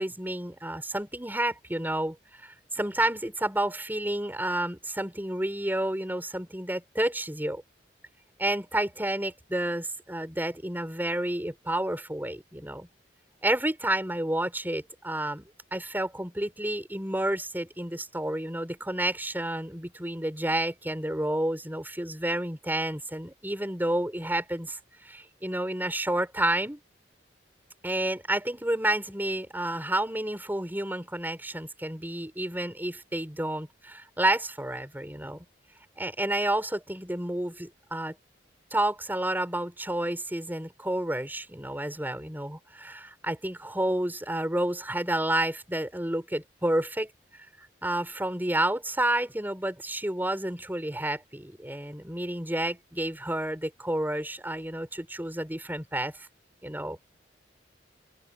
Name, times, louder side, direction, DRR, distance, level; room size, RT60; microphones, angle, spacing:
voice 1, 0.0-7.6 8.4-12.9 13.4-26.8 27.8-35.4 36.0-38.2 38.7-47.1 47.6-56.3 56.6-57.1, right 1 dB, 10° right, 4.9 m, -30 dB
open air
head